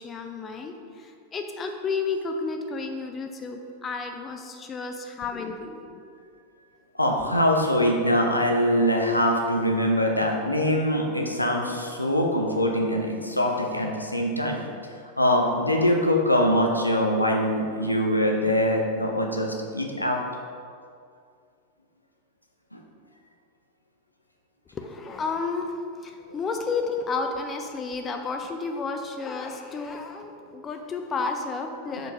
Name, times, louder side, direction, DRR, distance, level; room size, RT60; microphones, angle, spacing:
voice 1, 0.0-6.1 24.7-25.8 26.0-32.1, left 4 dB, 25° left, 4 dB, 0.5 m, -32 dB
voice 2, 7.0-14.6 15.2-20.2 22.7-22.8 26.3-26.4 31.9-32.0, equal, 85° left, 1 dB, 0.6 m, -23 dB
4.8 x 4.6 x 4.6 m, 2.3 s
figure-of-eight pair, 90°, 0 cm